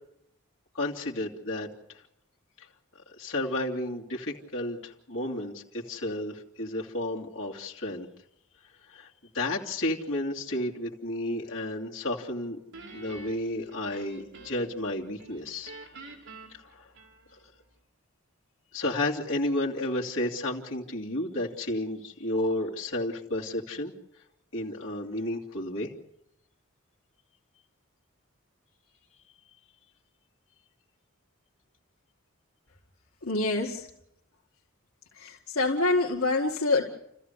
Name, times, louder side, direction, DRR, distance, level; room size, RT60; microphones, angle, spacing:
voice 1, 0.7-1.7 3.2-8.1 8.9-9.1 9.3-12.6 12.9-15.7 16.7-16.9 18.7-23.9 24.5-25.9, left 1 dB, 65° left, -2 dB, 2.9 m, -32 dB
Guitar, 12.7-14.9 15.2-17.5, right 2 dB, 60° right, 4.0 m, -47 dB
voice 2, 33.2-33.9 35.2-36.9, left 3 dB, 85° left, -2 dB, 2.2 m, -26 dB
29.0 x 14.5 x 8.2 m, 0.78 s
head